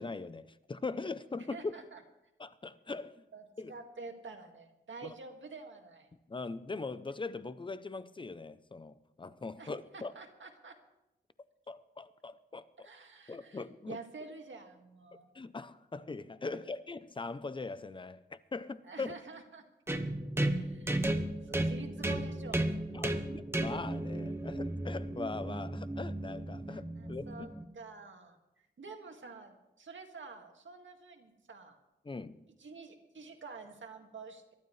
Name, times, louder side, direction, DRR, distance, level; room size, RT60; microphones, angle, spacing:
voice 1, 0.0-1.7 2.4-3.2 3.6-3.7 5.0-5.1 6.3-10.1 11.7-12.7 13.3-14.0 15.3-19.1 22.9-27.2 32.0-32.4, left 3 dB, 25° left, 0.5 m, -41 dB
voice 2, 1.4-2.0 3.3-6.1 9.6-10.7 12.8-15.3 16.5-16.6 18.8-19.6 20.5-23.2 26.7-31.8 32.6-34.5, right 4 dB, 75° right, 1.9 m, -49 dB
sound 1, 19.9-27.6, right 1 dB, 10° right, 1.0 m, -34 dB
23.5 x 12.0 x 3.2 m
wide cardioid pair, 125°, 20 cm